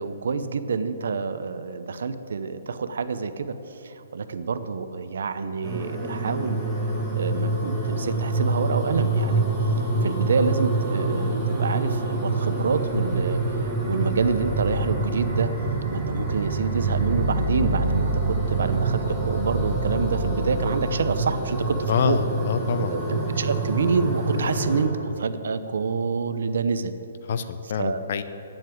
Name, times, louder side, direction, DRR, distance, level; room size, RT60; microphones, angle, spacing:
voice 1, 0.0-3.5 3.8-9.5 9.8-15.5 15.9-22.2 22.9-26.9 27.8-28.0, right 5 dB, 65° right, 11 dB, 0.7 m, -27 dB
sound 1, 5.6-24.9, right 2 dB, ahead, 1.9 m, -26 dB
voice 2, 21.9-23.2 27.3-28.2, left 7 dB, 40° left, 11 dB, 0.6 m, -26 dB
8.9 x 7.7 x 9.2 m, 3.0 s
hypercardioid pair, 175°, 0 cm